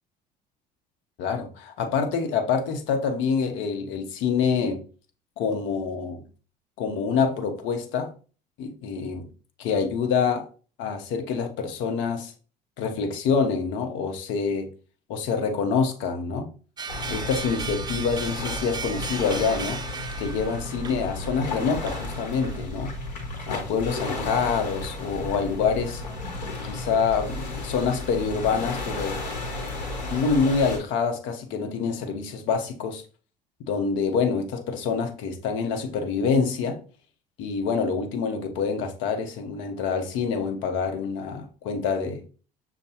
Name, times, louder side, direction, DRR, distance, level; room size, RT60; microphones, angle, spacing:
voice 1, 1.2-4.8 5.4-6.2 6.8-8.1 8.6-9.3 9.6-10.5 10.8-12.3 12.8-14.7 15.1-16.5 17.1-19.8 20.2-22.9 23.5-26.0 26.6-29.3 30.1-33.0 33.7-36.8 37.4-42.2, left 5 dB, 65° left, 0.9 m, -26 dB
sound 1, 16.8-22.7, right 5 dB, 20° right, 0.4 m, -37 dB
sound 2, 16.9-30.8, left 2 dB, 85° left, 1.0 m, -33 dB
6.5 x 2.2 x 2.9 m
hypercardioid pair, 65°, 21 cm